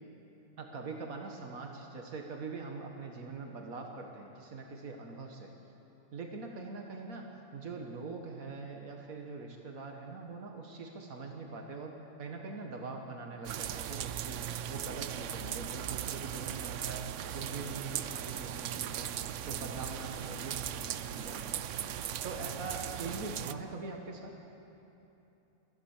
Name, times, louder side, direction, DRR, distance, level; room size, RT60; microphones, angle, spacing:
voice 1, 0.6-5.5 6.1-14.4 14.7-19.1 19.5-21.7 22.2-24.3, right 3 dB, 85° right, 2 dB, 2.0 m, -43 dB
sound 1, 13.4-23.5, right 10 dB, 65° right, 1.0 m, -38 dB
24.5 x 15.0 x 7.3 m, 2.9 s
omnidirectional pair, 1.4 m